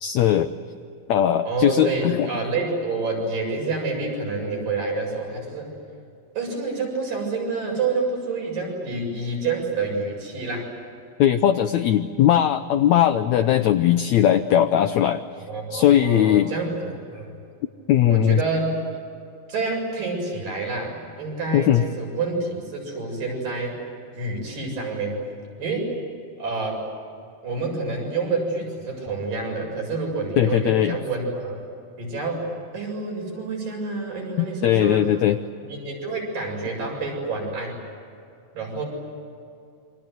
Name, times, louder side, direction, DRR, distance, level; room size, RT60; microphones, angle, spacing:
voice 1, 0.0-0.5 1.1-2.3 11.2-15.2 15.7-16.5 17.9-18.4 21.5-21.8 30.4-31.0 34.4-35.4, left 11 dB, 75° left, 8 dB, 1.8 m, -19 dB
voice 2, 1.4-5.7 6.4-10.7 15.4-17.4 18.1-18.8 19.5-23.8 24.2-25.2 25.6-26.0 26.4-26.8 27.4-31.7 32.0-32.5 32.7-35.1 35.6-37.8 38.5-38.8, right 3 dB, 75° right, 0 dB, 8.9 m, -28 dB
28.0 x 26.0 x 7.9 m, 2.5 s
omnidirectional pair, 3.9 m